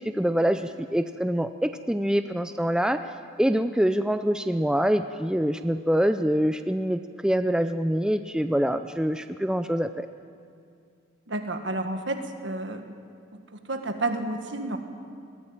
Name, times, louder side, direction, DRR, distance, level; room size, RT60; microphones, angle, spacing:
voice 1, 0.1-3.0 3.4-10.1, equal, 5° right, 9 dB, 0.4 m, -25 dB
voice 2, 11.3-12.8 13.5-14.8, right 2 dB, 65° right, 6 dB, 1.8 m, -30 dB
22.0 x 15.0 x 9.0 m, 2.3 s
head